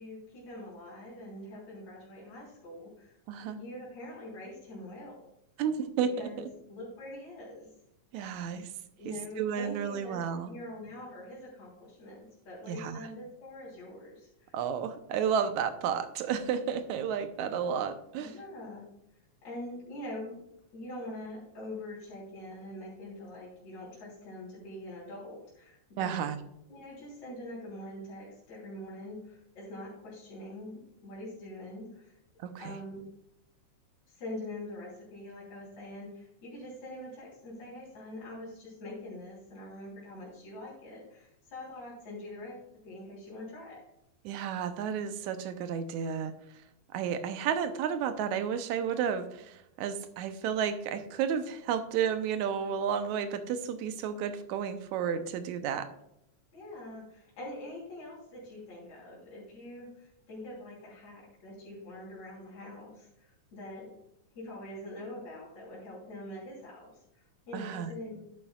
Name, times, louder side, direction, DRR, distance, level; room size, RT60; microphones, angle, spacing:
voice 1, 0.0-3.1 3.5-5.2 6.1-6.4 6.7-7.7 9.0-14.6 18.2-18.8 19.4-20.4 20.7-26.3 26.7-32.2 32.6-33.0 34.1-43.8 56.5-63.9 64.3-68.2, left 1 dB, 70° left, -7 dB, 4.8 m, -44 dB
voice 2, 3.3-3.6 5.6-6.5 8.1-8.7 9.1-10.5 12.7-13.0 14.5-18.3 26.0-26.4 32.4-32.8 44.3-46.3 46.9-55.9 67.5-67.9, right 7 dB, 85° right, 10 dB, 2.2 m, -32 dB
11.0 x 9.4 x 2.4 m, 0.80 s
omnidirectional pair, 3.3 m